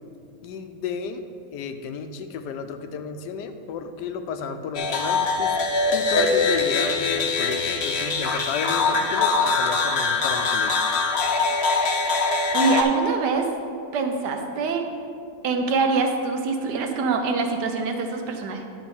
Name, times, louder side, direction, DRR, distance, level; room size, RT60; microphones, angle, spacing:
voice 1, 0.4-1.2 1.5-5.6 5.9-10.8, left 6 dB, 85° left, 8 dB, 1.2 m, -32 dB
sound 1, 4.7-12.8, left 4 dB, 55° left, 0.8 m, -23 dB
voice 2, 12.5-13.5 13.9-14.9 15.4-18.6, right 4 dB, 80° right, 5 dB, 1.4 m, -24 dB
9.9 x 3.8 x 6.9 m, 2.5 s
omnidirectional pair, 1.8 m